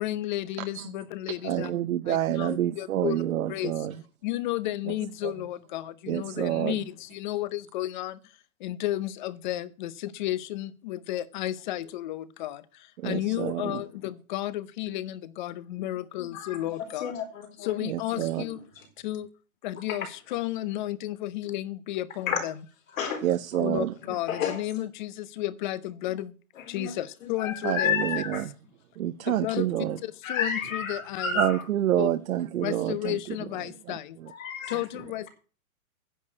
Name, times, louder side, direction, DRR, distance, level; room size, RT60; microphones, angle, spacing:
voice 1, 0.0-1.7 2.1-3.2 3.5-3.7 4.2-8.2 8.6-17.1 17.6-18.6 19.0-19.3 19.6-22.5 23.6-26.3 26.7-27.9 29.3-29.7 30.0-31.4 32.0-32.1 32.6-34.2 34.7-35.3, left 14 dB, 35° left, 0.7 m, -33 dB
voice 2, 1.4-4.0 4.9-5.0 5.2-5.3 6.1-6.8 13.0-13.8 17.8-18.4 23.2-23.9 27.6-28.5 29.0-30.0 31.4-33.4 33.9-34.3, right 12 dB, 75° right, 0.9 m, -28 dB
voice 3, 17.0-17.8 18.1-18.2 19.9-20.0 22.3-22.4 22.9-23.2 23.5-23.6 24.3-24.6 26.6-26.9 27.2-28.4 30.2-31.6 34.3-34.8, left 6 dB, 65° left, 4.2 m, -31 dB
10.0 x 6.5 x 8.5 m
hypercardioid pair, 150°, 42 cm